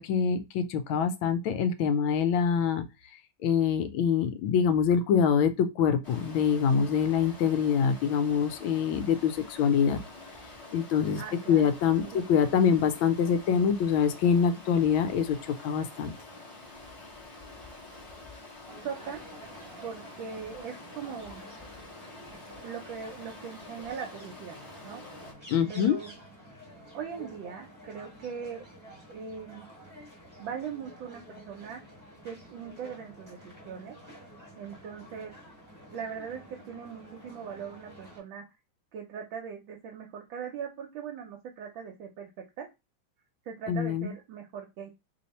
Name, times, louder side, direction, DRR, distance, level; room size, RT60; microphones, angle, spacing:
voice 1, 0.0-2.8 3.4-10.0 10.7-11.2 11.5-16.1 25.5-26.0 43.7-44.1, left 7 dB, 80° left, 1.3 m, -25 dB
Stream, 6.0-25.3, left 2 dB, 20° left, 0.9 m, -47 dB
voice 2, 11.2-11.7 12.0-12.2 18.8-19.2 19.8-21.4 22.6-25.0 25.7-26.1 26.9-28.6 29.1-29.7 30.4-31.8 32.2-34.0 34.6-35.3 35.9-38.4 38.9-42.3 42.6-42.7 43.4-44.9, right 7 dB, 75° right, 1.4 m, -40 dB
sound 1, 18.7-38.2, equal, 10° right, 0.9 m, -50 dB
3.4 x 2.7 x 4.1 m
omnidirectional pair, 2.2 m